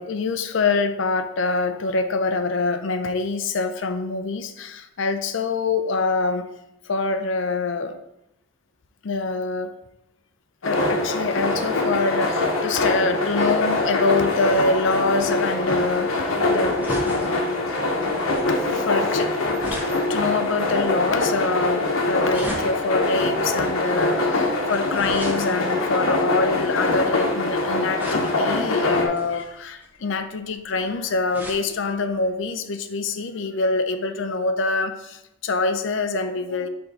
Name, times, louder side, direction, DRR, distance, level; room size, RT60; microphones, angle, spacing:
voice 1, 0.0-6.5 6.8-7.9 9.0-9.7 10.6-17.6 18.5-36.7, left 3 dB, 65° left, 9 dB, 0.5 m, -25 dB
sound 1, 10.6-29.1, left 2 dB, 80° left, 1.0 m, -23 dB
sound 2, 14.8-27.3 28.0-28.6 29.1-31.7 32.1-32.2 32.4-32.5, equal, 10° right, 1.1 m, -39 dB
4.8 x 3.7 x 5.3 m, 0.88 s
head